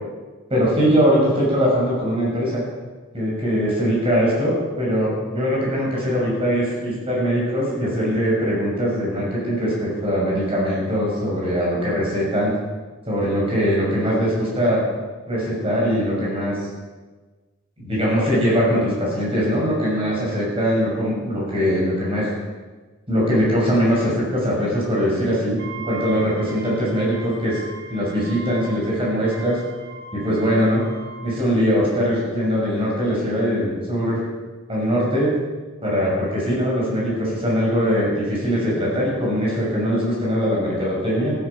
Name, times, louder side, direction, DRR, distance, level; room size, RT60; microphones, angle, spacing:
voice 1, 0.5-2.6 3.1-12.5 13.0-14.8 15.3-16.6 17.8-22.3 23.1-27.6 27.9-29.6 30.1-30.8 31.2-34.2 34.7-35.3 35.8-41.3, equal, 25° right, -4 dB, 6.6 m, -21 dB
Wind instrument woodwind instrument, 25.6-31.5, right 4 dB, 55° right, 2.5 m, -39 dB
15.0 x 14.0 x 5.7 m, 1.3 s
head